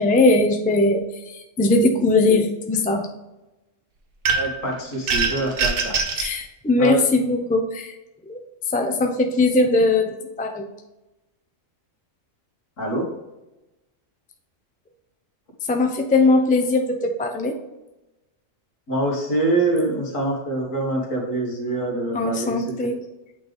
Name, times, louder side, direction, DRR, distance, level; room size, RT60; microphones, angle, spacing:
voice 1, 0.0-3.1 6.2-7.9 8.3-8.4 8.7-10.1 10.4-10.6 15.7-17.5 22.1-22.9, left 2 dB, 10° left, 3 dB, 0.5 m, -20 dB
sound 1, 4.2-4.6 5.1-6.3, right 4 dB, 90° right, 1.4 m, -23 dB
voice 2, 4.3-6.0 6.8-7.0 12.8-13.1 18.9-22.7, right 2 dB, 75° left, -2 dB, 2.2 m, -25 dB
8.5 x 4.0 x 3.5 m, 0.99 s
omnidirectional pair, 1.4 m